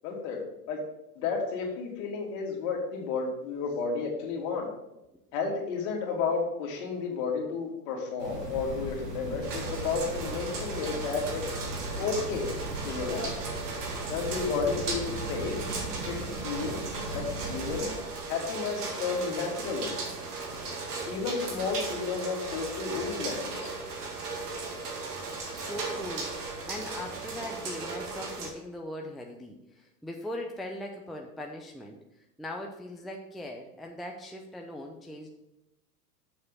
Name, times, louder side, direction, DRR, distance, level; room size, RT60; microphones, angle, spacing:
voice 1, 0.0-0.4 0.7-0.8 1.2-4.7 5.3-11.4 12.0-12.5 12.8-13.3 14.1-15.6 16.1-16.8 17.1-17.9 18.3-20.0 21.1-23.7, left 5 dB, 55° left, 0 dB, 2.4 m, -32 dB
sound 1, 8.2-17.8, right 1 dB, 90° right, 1.9 m, -38 dB
sound 2, 9.4-28.5, right 3 dB, 70° right, 2.2 m, -36 dB
sound 3, 14.6-19.9, right 4 dB, 35° right, 1.4 m, -47 dB
voice 2, 25.5-26.3 26.6-32.0 32.4-35.3, left 1 dB, ahead, 1 dB, 0.6 m, -40 dB
7.0 x 6.4 x 5.5 m, 0.92 s
hypercardioid pair, 90°, 47 cm